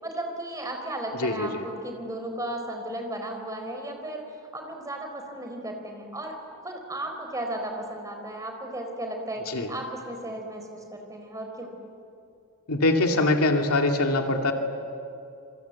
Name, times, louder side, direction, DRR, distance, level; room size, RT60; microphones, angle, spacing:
voice 1, 0.0-4.2 4.5-6.3 6.6-11.7, right 1 dB, 15° right, 3 dB, 4.0 m, -35 dB
voice 2, 1.2-1.6 9.5-9.7 12.7-14.5, left 2 dB, 85° left, 3 dB, 2.5 m, -23 dB
27.5 x 24.0 x 8.3 m, 2.5 s
head